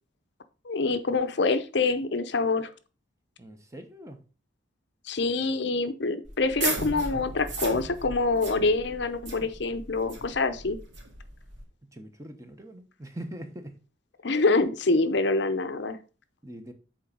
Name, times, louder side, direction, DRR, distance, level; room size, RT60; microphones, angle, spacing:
voice 1, 0.6-2.7 5.1-10.8 14.2-16.0, left 3 dB, 60° left, 10 dB, 0.7 m, -26 dB
voice 2, 3.4-4.2 11.8-13.8 16.4-16.7, right 1 dB, 15° right, 6 dB, 1.0 m, -42 dB
sound 1, 6.2-11.6, right 3 dB, 60° right, 2.4 m, -36 dB
7.6 x 4.4 x 5.2 m, 0.34 s
head